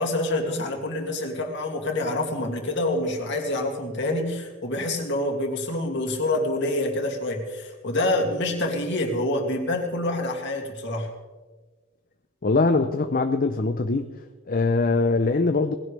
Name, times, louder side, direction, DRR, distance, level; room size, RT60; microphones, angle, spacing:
voice 1, 0.0-11.1, left 1 dB, 60° left, 1 dB, 2.6 m, -27 dB
voice 2, 12.4-14.1 14.5-15.7, left 3 dB, 45° left, 7 dB, 0.6 m, -22 dB
20.0 x 16.0 x 3.4 m, 1.3 s
head